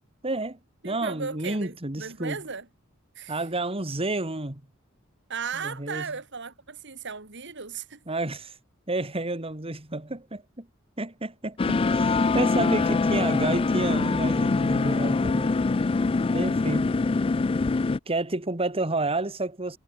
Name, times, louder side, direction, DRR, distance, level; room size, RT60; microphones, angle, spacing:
voice 1, 0.2-0.6 0.8-2.4 3.3-4.6 5.6-6.0 8.1-8.6 8.9-10.7 11.0-15.6 16.3-17.0 18.1-19.8, right 2 dB, 30° right, 2.3 m, -30 dB
voice 2, 0.8-2.7 3.1-3.4 5.3-8.0, right 5 dB, 60° right, 2.9 m, -36 dB
sound 1, 11.6-18.0, left 3 dB, 25° left, 0.4 m, -24 dB
head